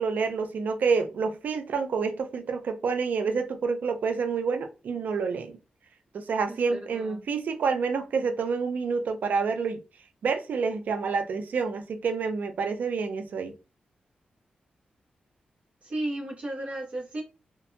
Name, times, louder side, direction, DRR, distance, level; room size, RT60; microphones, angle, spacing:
voice 1, 0.0-5.5 6.1-9.8 10.2-13.5, right 5 dB, 70° right, 0.4 m, -28 dB
voice 2, 6.5-7.2 15.8-17.2, right 1 dB, 55° right, 1.1 m, -34 dB
2.5 x 2.2 x 2.6 m
wide cardioid pair, 120°, 3 cm